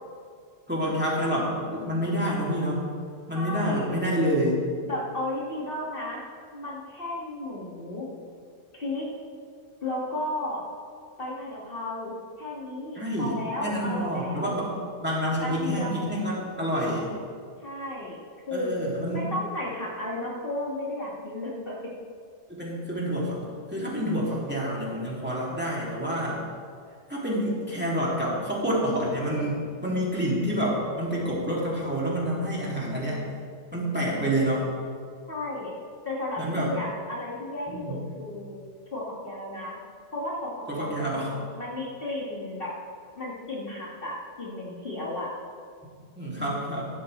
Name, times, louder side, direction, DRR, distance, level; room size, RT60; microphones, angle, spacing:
voice 1, 0.7-2.8 3.3-4.6 13.0-13.3 13.6-17.2 18.5-19.3 22.5-23.4 23.7-26.4 27.1-33.2 33.7-34.7 36.4-36.7 37.7-38.0 40.7-41.4 46.2-46.9, equal, 10° right, -6 dB, 2.9 m, -28 dB
voice 2, 3.3-3.9 4.8-6.2 6.5-8.1 8.7-9.1 9.8-10.6 11.2-14.6 15.4-16.1 17.6-18.2 18.5-18.7 19.1-21.8 35.3-35.7 36.0-38.6 38.9-39.8 40.1-41.2 41.5-42.7 43.1-45.3, left 1 dB, 50° left, -5 dB, 2.4 m, -34 dB
16.0 x 12.5 x 3.4 m, 2.1 s
omnidirectional pair, 1.2 m